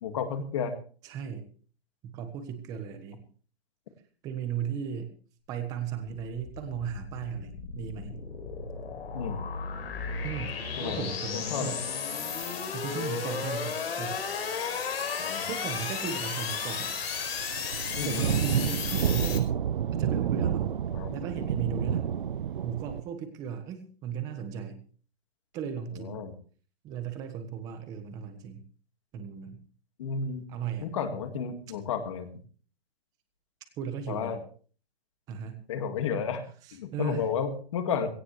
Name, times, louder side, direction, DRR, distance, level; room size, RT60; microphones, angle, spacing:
voice 1, 0.0-0.7 9.1-9.4 10.8-11.1 11.3-11.8 15.2-15.5 18.0-18.3 20.9-21.2 26.0-26.3 30.0-30.5 30.8-32.3 34.1-34.4 35.7-36.4 36.7-38.1, left 6 dB, 30° left, 6 dB, 2.0 m, -32 dB
voice 2, 1.0-1.4 2.1-3.2 4.2-5.1 5.5-8.2 10.2-11.8 12.7-14.2 15.3-16.9 18.0-19.5 19.9-20.7 21.1-22.1 22.6-24.8 25.5-26.3 26.8-28.6 29.1-29.6 30.5-30.9 33.8-34.4 35.3-35.6 36.9-37.2, right 7 dB, 10° right, 8 dB, 1.2 m, -36 dB
sound 1, 5.8-19.4, left 6 dB, 70° left, 4.9 m, -34 dB
sound 2, 16.4-16.5 16.8-23.0, right 9 dB, 55° right, 0.7 m, -29 dB
17.5 x 17.5 x 3.3 m, 0.42 s
hypercardioid pair, 175°, 31 cm